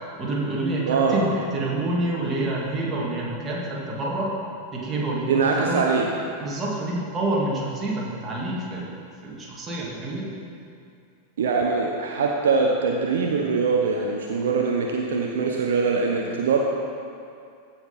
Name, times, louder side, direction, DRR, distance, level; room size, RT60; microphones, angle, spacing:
voice 1, 0.2-4.3 4.7-5.9 6.4-8.9 9.2-10.3, right 2 dB, 20° right, -4 dB, 2.1 m, -27 dB
voice 2, 0.9-1.3 5.3-6.1 11.4-16.6, right 4 dB, 60° right, 0 dB, 0.7 m, -22 dB
15.0 x 5.9 x 4.1 m, 2.5 s
figure-of-eight pair, 90°, 0 cm